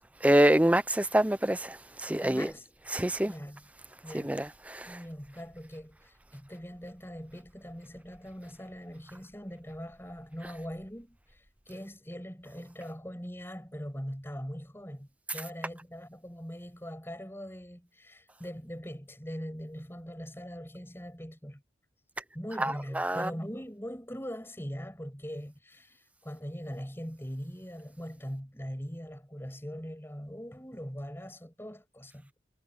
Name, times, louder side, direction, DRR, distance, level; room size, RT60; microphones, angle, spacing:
voice 1, 0.2-1.8 2.0-2.5 2.9-3.3 4.1-4.9 22.6-23.3, right 1 dB, 10° right, 0.6 m, -26 dB
voice 2, 2.2-2.7 3.3-3.6 4.0-4.5 4.9-21.6 22.3-32.4, equal, 15° left, 7.8 m, -41 dB
head